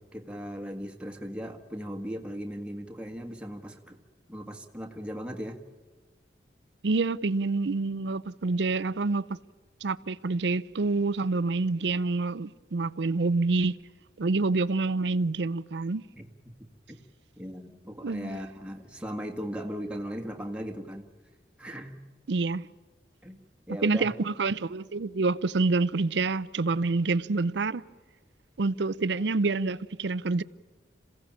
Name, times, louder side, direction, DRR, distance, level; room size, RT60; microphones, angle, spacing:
voice 1, 0.0-4.0 4.3-5.6 16.1-16.3 16.9-17.0 17.4-21.1 21.6-22.0 23.2-23.4 23.7-24.1, equal, 5° right, 1.7 m, -38 dB
voice 2, 6.8-9.3 9.8-13.7 14.2-16.1 18.0-18.4 22.3-22.6 23.8-27.8 28.6-30.4, right 3 dB, 80° right, 0.6 m, -27 dB
27.0 x 16.0 x 8.7 m
head